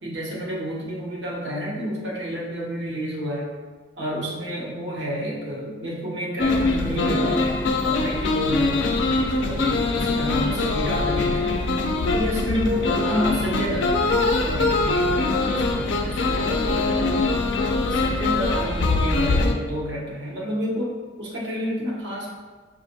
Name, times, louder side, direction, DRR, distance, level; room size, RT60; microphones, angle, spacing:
voice 1, 0.0-3.5 4.0-7.5 7.8-9.1 9.4-11.5 12.1-14.0 14.4-17.3 17.9-22.3, equal, 90° right, -4 dB, 0.9 m, -29 dB
sound 1, 6.4-19.5, left 3 dB, 90° left, 0.4 m, -23 dB
5.1 x 2.5 x 2.7 m, 1.4 s
head